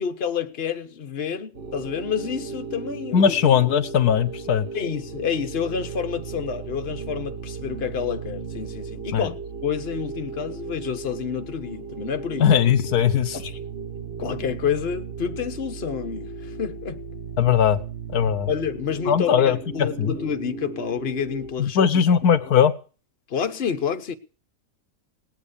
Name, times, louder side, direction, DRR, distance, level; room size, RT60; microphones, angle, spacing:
voice 1, 0.0-3.4 4.7-9.4 9.6-12.5 13.3-13.6 14.0-17.0 18.2-21.8 23.3-24.1, left 7 dB, 45° left, 1.3 m, -29 dB
sound 1, 1.5-21.5, right 5 dB, 40° right, 4.8 m, -36 dB
voice 2, 3.1-4.7 9.1-9.3 12.4-13.4 17.4-17.8 18.1-18.5 19.1-20.1 21.6-22.7, left 8 dB, 80° left, 1.5 m, -19 dB
19.0 x 8.9 x 6.8 m
omnidirectional pair, 1.6 m